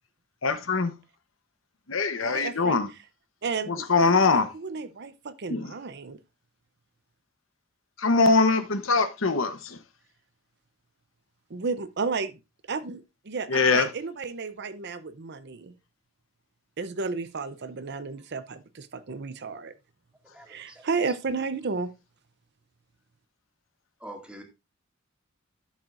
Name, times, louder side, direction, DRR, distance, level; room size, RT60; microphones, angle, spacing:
voice 1, 0.4-0.9 1.9-2.9 3.7-4.5 5.5-5.7 8.0-9.8 13.5-13.9, left 4 dB, 75° left, 1.0 m, -22 dB
voice 2, 2.2-2.8 3.4-6.2 11.5-12.4 12.7-15.7 16.8-19.7 20.5-21.9, right 4 dB, 55° right, 0.7 m, -33 dB
voice 3, 20.3-20.8 24.0-24.4, right 1 dB, 5° right, 2.1 m, -44 dB
11.5 x 7.3 x 2.5 m
head